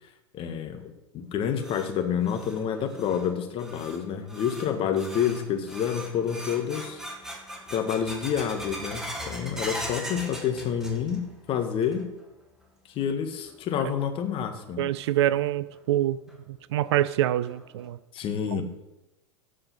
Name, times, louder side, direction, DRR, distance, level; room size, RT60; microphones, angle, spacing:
voice 1, 0.3-7.0 7.7-12.1 12.9-14.9 18.1-18.6, left 8 dB, 35° left, 6 dB, 1.5 m, -28 dB
sound 1, 1.2-11.4 11.6-12.2 12.6-12.7 13.5-13.6 15.2-15.3 15.7-15.8 16.3-16.4 16.9-17.0 17.5-17.9, equal, 5° right, 2.1 m, -40 dB
voice 2, 14.8-16.2 16.5-18.0, right 13 dB, 60° right, 17 dB, 0.5 m, -25 dB
14.5 x 5.4 x 5.7 m, 0.97 s
figure-of-eight pair, 95°, 16 cm